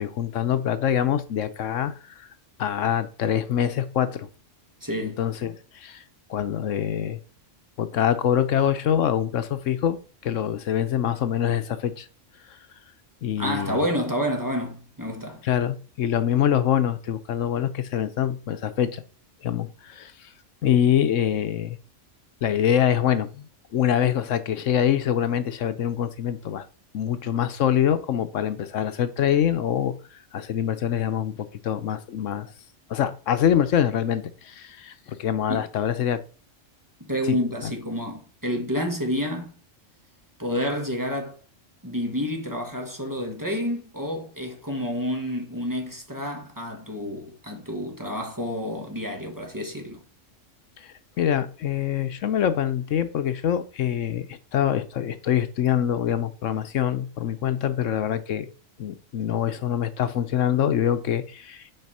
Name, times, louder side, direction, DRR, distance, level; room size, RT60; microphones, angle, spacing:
voice 1, 0.0-2.3 2.6-4.3 5.0-6.0 6.3-7.2 7.8-12.1 13.2-13.8 15.4-19.0 19.4-20.3 20.6-21.8 22.4-26.7 26.9-29.9 30.3-32.5 32.9-36.2 37.3-37.4 37.6-37.7 50.8-58.5 58.8-61.7, left 10 dB, 80° left, 1.1 m, -25 dB
voice 2, 4.8-5.2 13.4-15.4 35.5-35.6 37.0-39.5 40.4-41.4 41.8-50.0, equal, 15° right, 1.6 m, -29 dB
7.8 x 4.8 x 5.5 m
omnidirectional pair, 1.3 m